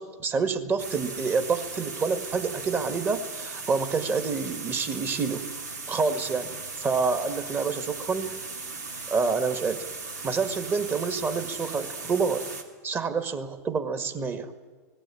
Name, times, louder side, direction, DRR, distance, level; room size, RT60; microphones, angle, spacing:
voice 1, 0.0-5.5 5.9-8.4 9.1-9.8 10.2-12.4 12.8-14.5, right 5 dB, 25° right, 9 dB, 1.9 m, -28 dB
sound 1, 0.8-12.6, right 4 dB, 85° right, 2.8 m, -37 dB
18.5 x 16.5 x 9.9 m, 1.5 s
hypercardioid pair, 105°, 9 cm